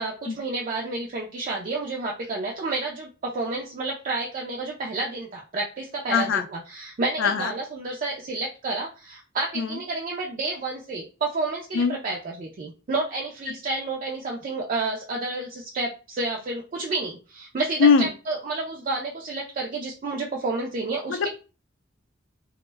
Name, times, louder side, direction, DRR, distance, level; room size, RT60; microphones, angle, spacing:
voice 1, 0.0-21.3, right 3 dB, 40° right, -1 dB, 0.3 m, -30 dB
voice 2, 6.1-6.4 7.2-7.5 9.6-9.7 11.7-11.9 17.8-18.1, left 5 dB, 70° left, 7 dB, 0.4 m, -19 dB
2.1 x 2.0 x 3.2 m, 0.33 s
head